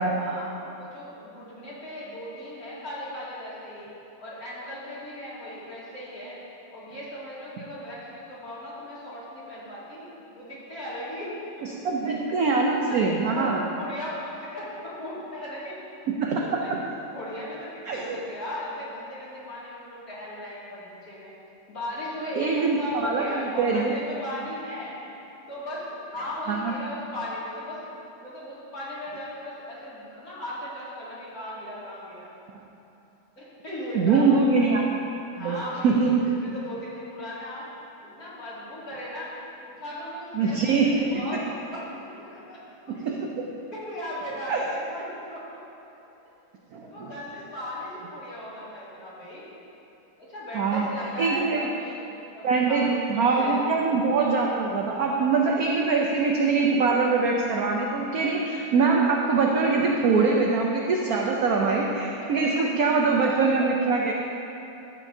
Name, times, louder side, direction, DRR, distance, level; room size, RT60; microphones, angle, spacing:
voice 1, 0.0-3.9 4.2-6.4 6.7-11.3 11.7-12.2 12.9-13.0 13.3-15.8 16.4-16.7 17.1-21.3 21.7-24.9 25.5-27.8 28.1-32.3 33.4-34.3 35.3-37.7 38.0-43.0 43.7-45.4 46.8-49.5 50.2-52.0 52.3-53.1 53.4-53.7, left 1 dB, 45° left, -10 dB, 2.8 m, -37 dB
voice 2, 11.8-13.6 16.1-16.4 16.7-16.8 17.9-18.2 22.4-23.9 26.5-26.7 33.9-34.9 35.4-36.3 40.3-41.4 42.9-43.4 44.5-44.6 46.7-47.1 50.5-50.9 51.2-51.6 52.4-64.1, right 4 dB, 75° right, -1 dB, 0.8 m, -23 dB
12.5 x 8.4 x 2.7 m, 3.0 s
omnidirectional pair, 2.3 m